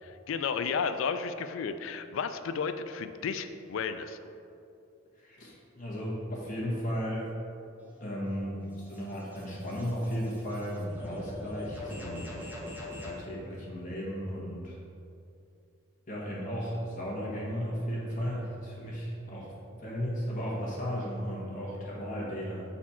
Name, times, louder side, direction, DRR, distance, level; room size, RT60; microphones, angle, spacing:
voice 1, 0.0-4.2, left 6 dB, 65° left, 10 dB, 0.3 m, -33 dB
voice 2, 5.2-7.3 8.0-12.4 13.0-14.8 16.1-19.5 19.8-22.6, equal, 40° left, -5 dB, 1.4 m, -35 dB
sound 1, 7.8-13.2, left 1 dB, 10° right, 0.7 m, -43 dB
5.9 x 4.3 x 4.3 m, 2.6 s
head